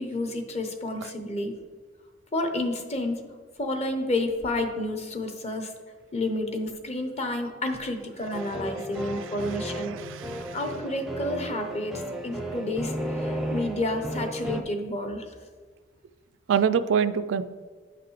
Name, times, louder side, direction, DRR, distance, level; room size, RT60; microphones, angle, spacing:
voice 1, 0.0-1.6 2.3-3.2 3.6-5.7 6.1-10.0 10.5-11.9 12.2-15.3, left 1 dB, 35° left, 6 dB, 0.7 m, -30 dB
sound 1, 8.3-14.6, right 1 dB, ahead, 0.5 m, -34 dB
voice 2, 9.0-10.6 16.5-17.4, right 7 dB, 70° right, 12 dB, 0.3 m, -27 dB
9.5 x 5.8 x 3.2 m, 1.5 s
head